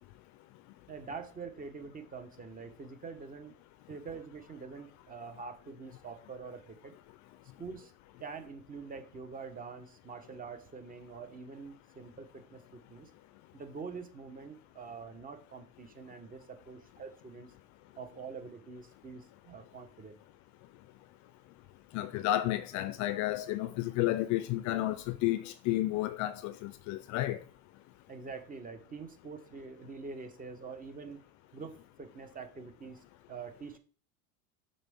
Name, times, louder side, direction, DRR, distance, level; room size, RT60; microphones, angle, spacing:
voice 1, 0.9-3.5 3.9-6.9 7.6-7.9 8.2-13.1 13.5-17.5 18.0-20.1 28.1-31.2 31.5-33.8, right 5 dB, 20° right, 1.0 m, -45 dB
voice 2, 21.9-27.4, left 15 dB, 45° left, 0.5 m, -31 dB
6.6 x 5.4 x 3.5 m
supercardioid pair, 135°, 42 cm